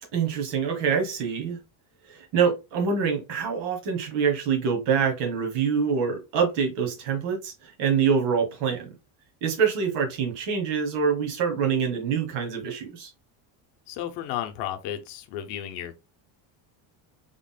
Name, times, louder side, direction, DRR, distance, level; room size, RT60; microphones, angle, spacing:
voice 1, 0.1-1.6 2.1-8.9 9.4-13.1, right 6 dB, 65° right, 1.4 m, -25 dB
voice 2, 13.9-15.9, left 11 dB, 65° left, 0.7 m, -33 dB
3.8 x 3.6 x 2.2 m
cardioid pair, 160°, 44 cm